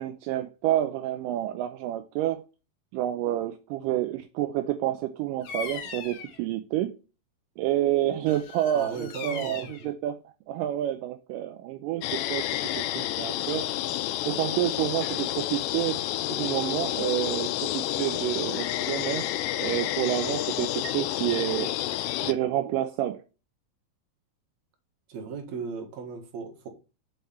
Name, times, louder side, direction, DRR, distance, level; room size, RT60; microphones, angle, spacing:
voice 1, 0.0-2.4 2.9-7.0 7.6-10.2 10.5-13.7 14.3-16.0 16.3-19.3 19.5-21.7 22.2-23.2, right 13 dB, 80° right, 2.1 m, -29 dB
Bird vocalization bird call bird song, 5.4-6.4 8.3-9.9, left 6 dB, 60° left, 1.7 m, -39 dB
voice 2, 8.7-9.9 25.1-26.7, right 5 dB, 60° right, 2.5 m, -37 dB
sound 1, 12.0-22.3, left 14 dB, 80° left, 2.2 m, -30 dB
6.3 x 4.6 x 5.5 m
omnidirectional pair, 4.0 m